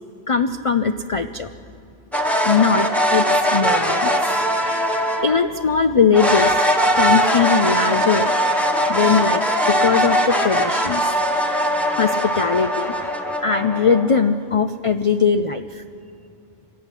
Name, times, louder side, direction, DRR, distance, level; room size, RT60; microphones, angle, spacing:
voice 1, 0.3-1.5 2.4-4.3 5.2-6.6 6.9-8.3 8.9-11.2 11.9-12.9 13.4-15.8, left 5 dB, 45° left, 9 dB, 0.4 m, -20 dB
sound 1, 2.1-5.4 6.1-14.3, equal, ahead, 1.4 m, -20 dB
25.0 x 13.0 x 9.9 m, 2.5 s
omnidirectional pair, 1.3 m